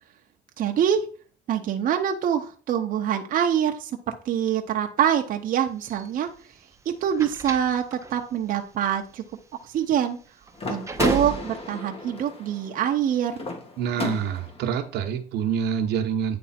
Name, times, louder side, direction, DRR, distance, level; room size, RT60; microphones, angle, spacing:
voice 1, 0.6-1.0 1.5-6.3 6.9-9.2 9.7-10.2 10.7-13.4, right 9 dB, 55° right, 3 dB, 0.8 m, -25 dB
sound 1, 5.8-11.8, right 4 dB, 15° right, 0.8 m, -34 dB
sound 2, 10.6-14.7, left 2 dB, 35° left, 1.6 m, -32 dB
voice 2, 13.8-16.4, right 7 dB, 85° right, 5 dB, 1.0 m, -26 dB
9.4 x 3.4 x 4.2 m, 0.41 s
cardioid pair, 110°, 17 cm